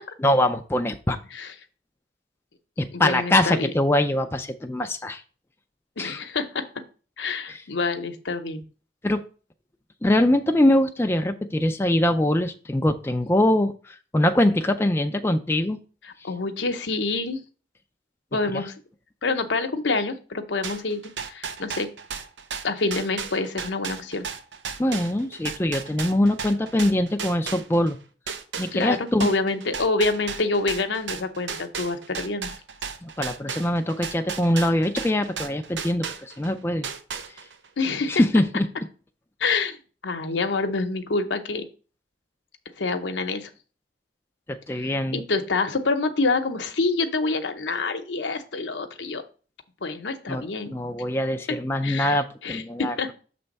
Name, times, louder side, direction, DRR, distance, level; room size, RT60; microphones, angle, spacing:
voice 1, 0.2-1.2 2.8-5.2 6.0-6.2 7.5-7.6 9.0-9.2 10.0-15.8 18.5-18.6 24.8-28.0 28.6-29.3 33.0-36.9 38.1-38.7 44.5-45.2 50.3-53.1, left 1 dB, 15° left, 5 dB, 0.4 m, -23 dB
voice 2, 2.9-3.7 6.0-6.6 7.2-8.6 16.2-17.4 18.3-18.7 19.2-21.9 22.6-24.3 28.7-32.5 37.8-38.2 39.4-39.8 40.0-41.6 42.8-43.5 44.7-49.2 49.8-50.7 51.8-53.1, left 3 dB, 85° left, 7 dB, 0.8 m, -27 dB
sound 1, 20.6-28.0 28.3-36.5 36.8-37.7, right 6 dB, 85° right, 0.7 m, -34 dB
7.0 x 3.3 x 5.3 m, 0.38 s
head